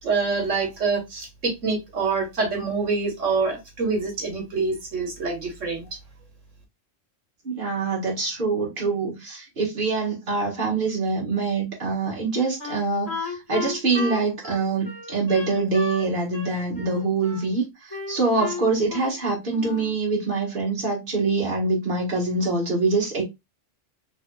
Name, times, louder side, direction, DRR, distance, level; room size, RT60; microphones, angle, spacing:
voice 1, 0.0-6.0, right 4 dB, 75° right, 1.8 m, -26 dB
voice 2, 7.4-23.2, right 3 dB, 45° right, 1.9 m, -25 dB
Wind instrument woodwind instrument, 12.6-16.1 16.3-17.5 17.9-19.2 19.5-20.0, left 2 dB, 15° left, 2.1 m, -34 dB
4.1 x 3.5 x 2.3 m
omnidirectional pair, 1.3 m